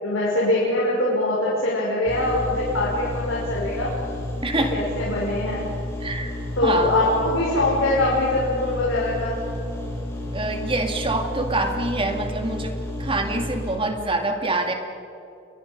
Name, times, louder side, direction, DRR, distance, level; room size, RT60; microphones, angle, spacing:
voice 1, 0.0-3.9 4.5-5.6 6.6-9.4, left 2 dB, 90° left, -6 dB, 5.9 m, -23 dB
sound 1, 2.1-13.7, left 1 dB, 15° left, 5.0 m, -31 dB
voice 2, 4.4-4.8 6.0-6.3 6.6-6.9 10.3-14.7, right 2 dB, 30° right, 4 dB, 2.3 m, -25 dB
29.0 x 22.5 x 5.4 m, 2.7 s
head